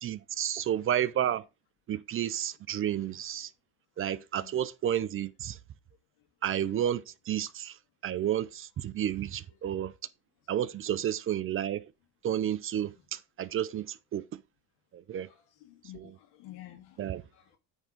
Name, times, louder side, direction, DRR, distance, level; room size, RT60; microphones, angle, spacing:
voice 1, 0.0-1.4 1.9-3.5 4.0-5.6 6.4-7.7 8.0-9.9 10.5-11.8 12.2-14.2 14.9-15.3 15.9-16.1 17.0-17.2, right 10 dB, 35° right, 0.4 m, -31 dB
voice 2, 15.3-17.0 17.3-17.6, left 14 dB, 80° left, 2.0 m, -51 dB
9.0 x 3.6 x 5.0 m
cardioid pair, 115°, 39 cm